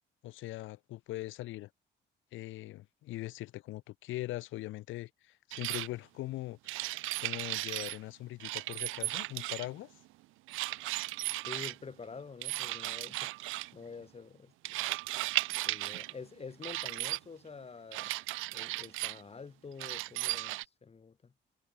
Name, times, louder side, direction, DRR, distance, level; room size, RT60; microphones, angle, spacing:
voice 1, 0.2-1.7 2.3-6.8 7.2-9.9, left 17 dB, 80° left, 0.5 m, -41 dB
sound 1, 5.5-5.9 6.7-8.0 8.4-9.8 10.5-11.8 12.4-13.7 14.6-16.1 16.6-17.2 17.9-19.2 19.8-20.6, right 19 dB, 90° right, 0.4 m, -36 dB
voice 2, 11.5-13.3 13.7-14.9 15.6-18.1 18.5-21.3, left 5 dB, 30° left, 1.2 m, -48 dB
cardioid pair, 90°, 20 cm